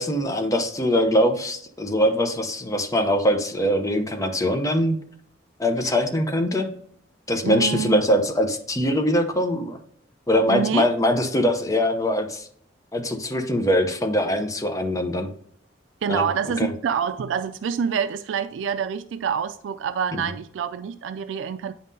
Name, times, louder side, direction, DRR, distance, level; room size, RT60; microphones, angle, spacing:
voice 1, 0.0-5.0 5.6-6.7 7.3-9.8 10.3-12.4 12.9-15.3 16.1-16.3 16.6-16.7, equal, 20° left, 0.7 m, -22 dB
voice 2, 7.4-8.0 10.5-10.9 16.0-21.7, right 7 dB, 85° right, 0.3 m, -26 dB
8.6 x 5.5 x 2.7 m
head